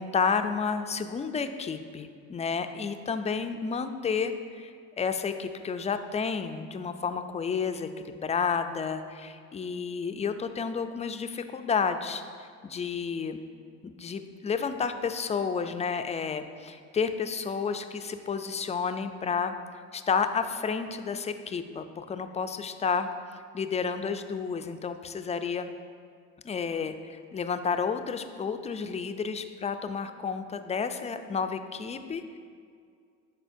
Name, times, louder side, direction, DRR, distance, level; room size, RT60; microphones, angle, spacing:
voice 1, 0.0-13.4 13.8-19.6 19.9-23.1 23.5-25.7 26.4-32.4, left 5 dB, 20° left, 8 dB, 0.3 m, -31 dB
11.0 x 4.3 x 2.6 m, 2.2 s
supercardioid pair, 75°, 36 cm